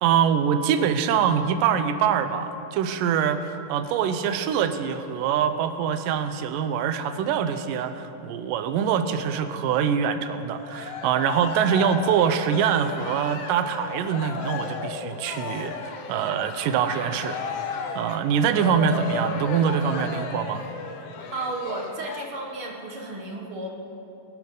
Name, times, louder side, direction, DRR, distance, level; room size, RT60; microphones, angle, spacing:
voice 1, 0.0-17.4 18.0-20.6, right 8 dB, 80° right, 9 dB, 2.3 m, -24 dB
Cheering, 10.5-22.2, left 5 dB, 70° left, 1.5 m, -34 dB
voice 2, 21.3-23.7, right 2 dB, 45° right, -1 dB, 2.1 m, -33 dB
23.5 x 11.5 x 3.9 m, 2.9 s
omnidirectional pair, 3.9 m